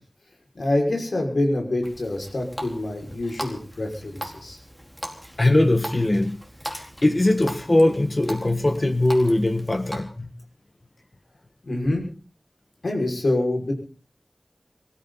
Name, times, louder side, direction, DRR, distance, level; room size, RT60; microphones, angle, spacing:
voice 1, 0.5-4.6 11.6-12.0 12.8-13.7, left 1 dB, 80° left, 5.9 m, -26 dB
Water tap faucet, 1.8-10.0, equal, 10° left, 4.4 m, -39 dB
voice 2, 5.4-6.4 6.7-10.3, left 1 dB, 40° left, 1.5 m, -21 dB
24.5 x 14.0 x 4.1 m
wide cardioid pair, 55°, 0 cm